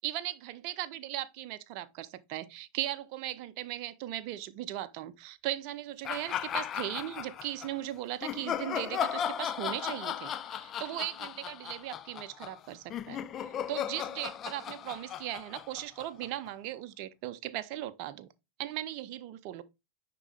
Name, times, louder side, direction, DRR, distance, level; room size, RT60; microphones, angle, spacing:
voice 1, 0.0-13.2 13.7-18.3 18.6-19.6, right 14 dB, 45° right, 0.6 m, -38 dB
sound 1, 6.0-7.7 8.2-16.5, left 9 dB, 30° left, 0.5 m, -36 dB
9.9 x 3.8 x 3.3 m
figure-of-eight pair, 90°, 0 cm